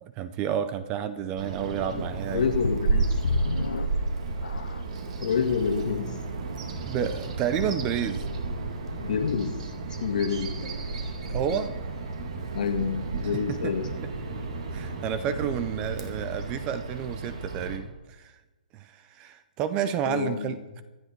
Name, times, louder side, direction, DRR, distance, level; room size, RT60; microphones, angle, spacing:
voice 1, 0.0-2.5 6.9-8.3 11.3-11.7 13.2-13.8 14.0-14.1 14.7-18.3 18.7-20.8, right 9 dB, 15° right, 13 dB, 0.5 m, -30 dB
Bird vocalization bird call bird song, 1.4-17.8, right 3 dB, 45° right, 2.2 m, -32 dB
voice 2, 2.3-3.1 5.2-6.2 8.9-9.6 10.0-10.5 11.5-11.6 12.5-13.8 20.0-20.6, left 6 dB, 60° left, 6 dB, 1.8 m, -28 dB
sound 1, 2.6-5.1 5.7-5.8 6.4-6.5, left 5 dB, 85° left, 0.9 m, -32 dB
25.5 x 9.2 x 4.5 m, 1.1 s
hypercardioid pair, 165°, 5 cm